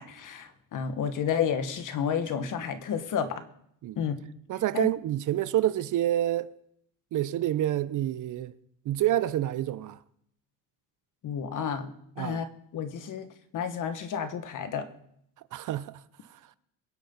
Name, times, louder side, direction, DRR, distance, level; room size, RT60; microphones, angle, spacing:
voice 1, 0.0-3.4 4.0-4.1 4.7-4.9 11.2-11.9 12.2-12.5 12.7-13.3 13.5-14.9, left 7 dB, 50° left, 1.7 m, -31 dB
voice 2, 4.5-6.5 7.1-8.5 8.9-10.0 12.2-12.4 15.5-16.0, right 13 dB, 50° right, 0.7 m, -28 dB
23.0 x 8.4 x 4.1 m
supercardioid pair, 90°, 39 cm